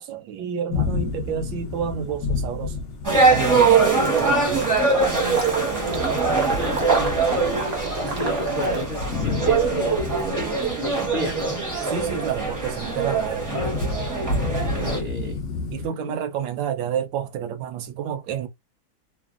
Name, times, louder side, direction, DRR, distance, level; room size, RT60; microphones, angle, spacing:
voice 1, 0.0-2.8 3.3-4.9 8.5-8.7 11.8-13.5 15.7-18.5, right 8 dB, 75° right, 1.2 m, -30 dB
sound 1, 0.7-15.9, left 3 dB, 55° left, 0.9 m, -32 dB
sound 2, 3.0-15.0, right 4 dB, 15° right, 0.6 m, -22 dB
Water / Liquid, 4.0-8.9, right 3 dB, 60° right, 0.5 m, -32 dB
voice 2, 6.0-7.8 8.2-11.5 14.7-15.4 15.8-16.2, left 1 dB, 75° left, 0.4 m, -33 dB
3.3 x 2.0 x 2.4 m
omnidirectional pair, 2.2 m